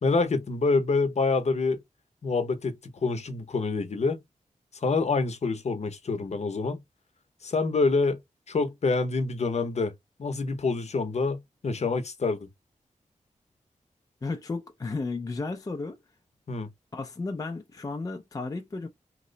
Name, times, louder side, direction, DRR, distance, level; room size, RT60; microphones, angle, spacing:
voice 1, 0.0-1.8 2.2-4.2 4.8-6.8 7.4-8.2 8.5-9.9 10.2-12.5 16.5-16.7, left 3 dB, 55° left, 0.7 m, -26 dB
voice 2, 14.2-16.0 16.9-18.9, left 3 dB, 25° left, 0.4 m, -33 dB
2.9 x 2.0 x 3.8 m
wide cardioid pair, 100°, 14 cm